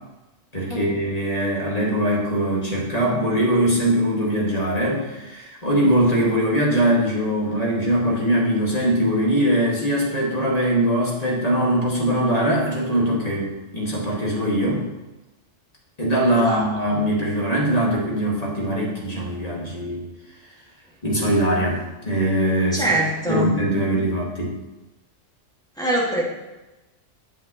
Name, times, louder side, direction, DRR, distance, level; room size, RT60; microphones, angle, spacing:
voice 1, 0.5-14.8 16.0-20.0 21.0-23.0 23.3-24.5, right 1 dB, 30° left, -4 dB, 1.9 m, -21 dB
voice 2, 22.7-23.5 25.8-26.2, right 1 dB, 5° left, -5 dB, 1.8 m, -23 dB
8.4 x 7.2 x 3.0 m, 1.0 s
omnidirectional pair, 1.3 m